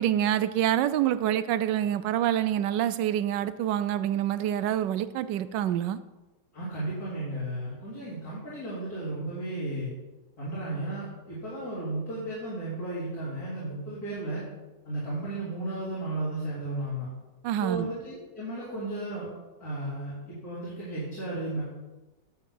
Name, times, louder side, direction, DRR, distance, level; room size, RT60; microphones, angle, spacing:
voice 1, 0.0-6.0 17.4-17.9, right 11 dB, 85° right, 14 dB, 1.2 m, -26 dB
voice 2, 6.5-9.9 10.4-14.4 14.8-17.1 17.6-19.3 19.6-21.6, right 2 dB, 55° left, -10 dB, 3.9 m, -34 dB
11.5 x 3.9 x 7.7 m, 1.1 s
omnidirectional pair, 1.9 m